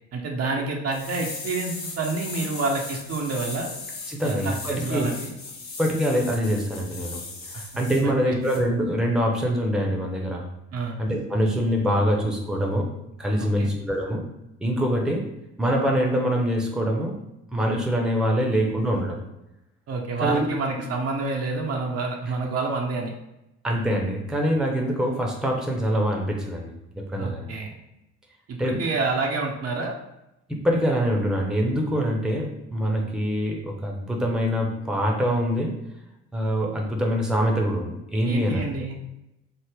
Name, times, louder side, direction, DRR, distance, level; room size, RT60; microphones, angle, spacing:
voice 1, 0.1-3.7 4.2-5.3 7.5-7.6 8.0-8.2 10.7-10.9 13.4-13.7 19.9-23.1 27.2-27.7 28.5-29.9 38.3-38.9, right 3 dB, 50° right, 1 dB, 0.7 m, -28 dB
sound 1, 0.9-8.0 8.4-8.6, left 3 dB, 65° left, 0.9 m, -37 dB
voice 2, 4.1-5.1 5.8-7.2 7.5-10.4 11.0-12.9 13.2-14.2 14.6-15.3 15.6-17.2 17.5-19.2 20.2-20.5 23.6-27.5 28.6-28.8 30.5-35.8 36.3-38.6, equal, ahead, 0 dB, 0.7 m, -24 dB
3.3 x 2.0 x 3.5 m, 0.90 s
hypercardioid pair, 55°, 31 cm